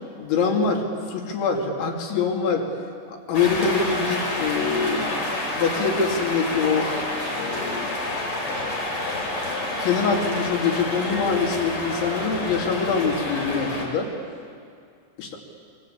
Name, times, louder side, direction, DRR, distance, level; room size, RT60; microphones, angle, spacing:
voice 1, 0.2-2.7 3.1-5.2 5.6-7.0 7.4-8.0 9.8-14.1 15.2-15.4, left 5 dB, 90° left, 0 dB, 5.2 m, -24 dB
sound 1, 3.3-13.9, left 2 dB, 30° left, 4.9 m, -28 dB
26.5 x 24.5 x 8.7 m, 2.3 s
omnidirectional pair, 5.1 m